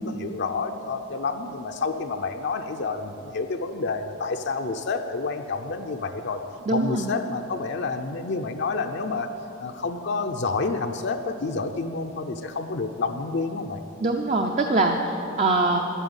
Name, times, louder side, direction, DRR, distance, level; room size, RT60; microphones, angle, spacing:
voice 1, 0.0-6.4 6.7-9.3 9.6-13.8, left 4 dB, 60° left, 5 dB, 0.6 m, -29 dB
voice 2, 6.7-7.1 14.0-15.8, right 2 dB, 35° right, 3 dB, 0.6 m, -23 dB
11.5 x 9.1 x 8.1 m, 3.0 s
head